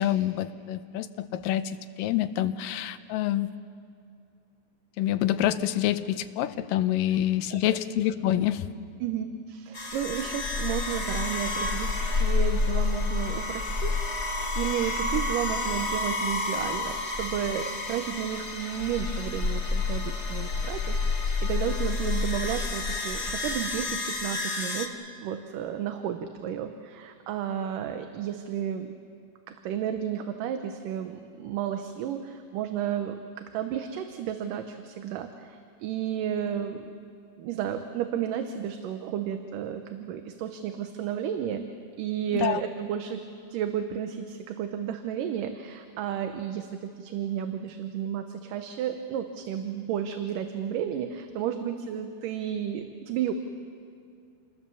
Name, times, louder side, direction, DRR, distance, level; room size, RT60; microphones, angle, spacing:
voice 1, 0.0-3.5 5.0-8.7 42.3-42.6, left 12 dB, 75° left, 11 dB, 2.3 m, -27 dB
voice 2, 9.0-28.9 29.5-36.9 37.4-41.7 42.0-43.2 43.5-53.3, right 9 dB, 75° right, 6 dB, 2.4 m, -32 dB
sound 1, 9.7-24.9, left 3 dB, 50° left, 0.7 m, -29 dB
28.0 x 20.5 x 7.1 m, 2.5 s
omnidirectional pair, 4.1 m